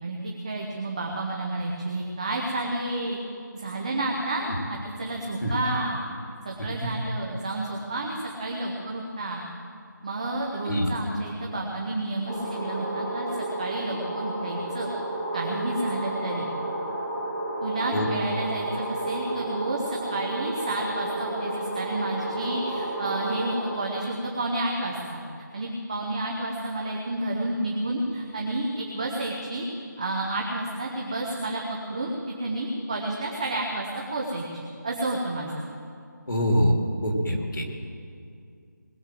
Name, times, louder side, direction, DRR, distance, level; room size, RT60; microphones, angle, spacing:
voice 1, 0.4-3.2 3.5-6.0 6.4-9.4 10.0-14.9 15.3-16.5 17.6-29.7 30.0-31.6 31.9-32.1 32.4-34.4 34.8-35.6, right 2 dB, 20° right, -1 dB, 0.9 m, -30 dB
sound 1, 12.3-23.7, right 1 dB, 10° left, 1.8 m, -32 dB
voice 2, 36.3-36.7 37.0-37.6, equal, 85° left, 1 dB, 3.0 m, -24 dB
20.0 x 7.4 x 7.7 m, 2.4 s
figure-of-eight pair, 175°, 10 cm